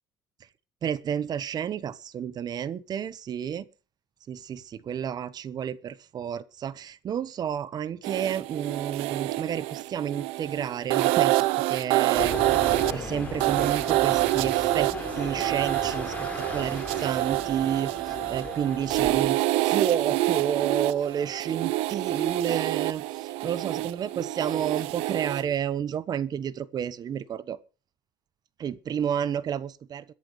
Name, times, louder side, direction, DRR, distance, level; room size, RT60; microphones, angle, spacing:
voice 1, 0.8-3.7 4.3-12.4 12.9-14.9 15.2-27.6 28.6-30.0, right 9 dB, 45° right, 1.2 m, -30 dB
sound 1, 8.0-25.5, right 17 dB, 85° right, 0.8 m, -27 dB
sound 2, 12.2-19.3, left 2 dB, 15° left, 5.6 m, -37 dB
22.5 x 11.0 x 3.3 m
cardioid pair, 120°, 10 cm